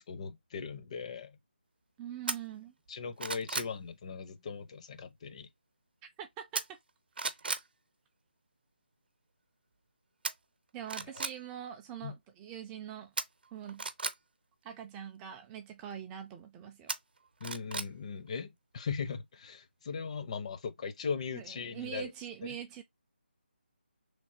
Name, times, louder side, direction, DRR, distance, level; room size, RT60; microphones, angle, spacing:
voice 1, 0.0-1.4 2.9-5.5 11.2-11.3 12.0-12.1 17.4-22.1 22.4-22.6, left 5 dB, 35° left, 0.6 m, -39 dB
voice 2, 2.0-2.7 6.2-6.8 7.2-7.4 10.7-13.1 13.5-13.8 14.6-16.9 21.3-22.8, right 10 dB, 10° right, 0.3 m, -43 dB
sound 1, 2.3-2.4 2.9-3.7 6.5-6.9 7.2-7.7 10.2-10.3 10.8-11.3 13.2-14.1 16.9-17.9 18.3-18.4, right 4 dB, 65° right, 0.7 m, -35 dB
4.3 x 3.3 x 2.6 m
figure-of-eight pair, 155°, 6 cm